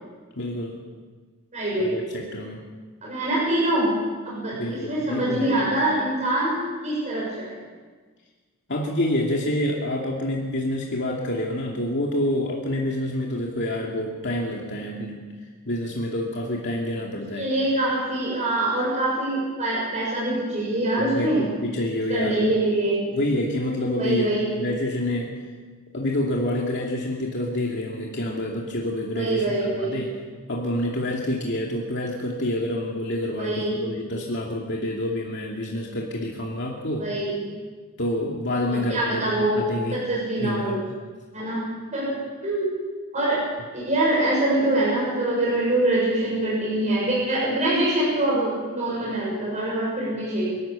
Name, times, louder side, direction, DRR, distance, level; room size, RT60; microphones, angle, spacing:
voice 1, 0.4-0.7 1.8-2.6 4.6-5.7 8.7-15.2 15.7-17.5 20.9-22.5 23.1-25.4 25.9-30.2 30.5-37.1 38.0-40.0 40.4-40.9, left 1 dB, 55° left, -2 dB, 2.6 m, -27 dB
voice 2, 1.5-1.9 3.0-3.9 4.2-6.6 6.8-7.6 17.4-21.5 22.1-23.1 24.0-24.5 29.2-30.0 33.4-33.9 37.0-37.5 38.7-39.6 39.9-40.8 41.3-41.6 41.9-42.2 42.4-42.7 43.1-43.4 43.7-50.6, right 1 dB, 35° right, -6 dB, 7.1 m, -24 dB
27.0 x 13.0 x 7.4 m, 1.4 s
head